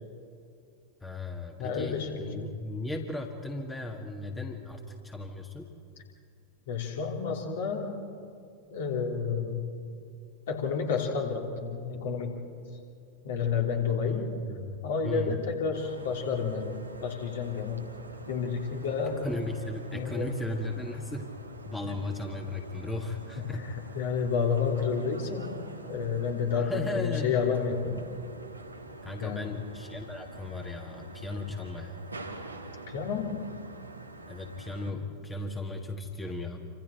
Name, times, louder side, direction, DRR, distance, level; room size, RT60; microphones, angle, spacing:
voice 1, 1.0-5.7 14.0-15.4 19.2-21.3 21.7-23.7 26.5-27.5 29.0-32.0 34.3-36.6, left 2 dB, 10° left, 2 dB, 1.8 m, -36 dB
voice 2, 1.6-2.5 6.7-8.0 8.7-9.9 10.5-12.5 13.2-14.5 14.8-17.9 18.3-19.3 19.9-20.4 21.8-21.9 23.4-28.0 29.2-29.6 32.9-33.5, left 5 dB, 60° left, 1 dB, 3.1 m, -30 dB
sound 1, 15.7-34.9, right 2 dB, 85° right, 1.8 m, -46 dB
28.0 x 26.0 x 4.5 m, 2.4 s
figure-of-eight pair, 90°, 0 cm